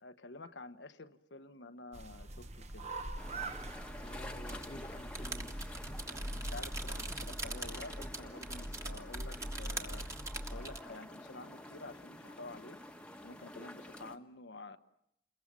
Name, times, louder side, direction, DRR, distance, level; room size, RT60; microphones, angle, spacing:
voice 1, 0.0-2.9 6.1-10.1 10.4-12.8 13.2-14.8, left 2 dB, 80° left, 9 dB, 1.2 m, -50 dB
sound 1, 1.9-7.3, right 2 dB, 35° right, 1.0 m, -45 dB
sound 2, 3.2-14.2, left 1 dB, 5° left, 1.2 m, -50 dB
voice 2, 4.0-6.4, left 1 dB, 35° left, 11 dB, 1.0 m, -52 dB
sound 3, 4.4-10.8, right 1 dB, 15° right, 1.7 m, -41 dB
28.5 x 22.0 x 7.5 m, 0.81 s
head